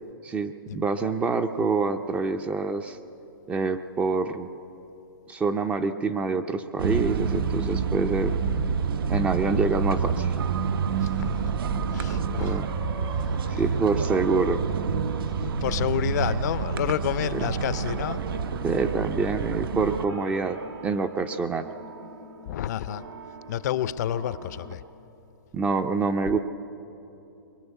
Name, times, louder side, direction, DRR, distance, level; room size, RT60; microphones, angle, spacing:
voice 1, 0.2-3.0 3.5-4.5 5.3-8.4 9.1-10.4 12.4-12.7 13.6-14.6 18.6-20.6 20.8-21.7 25.5-26.4, right 4 dB, 10° right, 9 dB, 0.4 m, -26 dB
sound 1, 6.8-20.0, right 6 dB, 70° right, 0.8 m, -28 dB
sound 2, 9.1-24.8, right 5 dB, 90° right, 2.3 m, -43 dB
voice 2, 11.0-11.5 11.9-12.6 13.1-13.8 15.3-18.2 22.5-23.0 23.5-24.8 26.3-26.4, left 11 dB, 45° left, 15 dB, 0.5 m, -30 dB
22.5 x 20.5 x 8.1 m, 3.0 s
hypercardioid pair, 155°, 12 cm